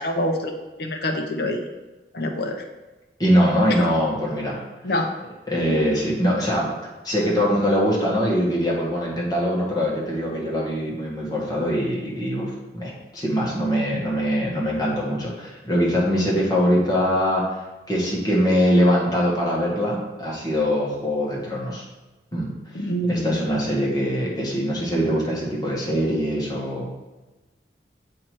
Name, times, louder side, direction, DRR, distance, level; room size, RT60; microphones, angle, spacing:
voice 1, 0.0-1.6 2.1-2.6 4.8-5.1 22.7-23.4, left 1 dB, 60° left, 3 dB, 0.7 m, -25 dB
voice 2, 3.2-4.6 5.5-6.7 7.0-21.8 22.3-26.9, equal, 20° left, -4 dB, 1.4 m, -23 dB
7.4 x 2.9 x 4.6 m, 1.2 s
head